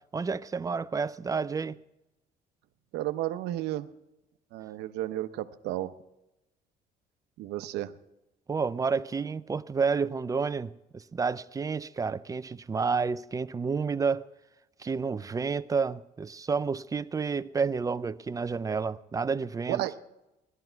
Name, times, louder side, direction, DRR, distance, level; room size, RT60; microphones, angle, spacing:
voice 1, 0.1-1.8 8.5-14.3 14.8-19.8, right 5 dB, 20° right, 0.4 m, -30 dB
voice 2, 2.9-3.9 4.5-5.9 7.4-7.9 19.7-20.0, right 14 dB, 85° right, 0.8 m, -32 dB
17.0 x 12.5 x 4.5 m
cardioid pair, 110°, 17 cm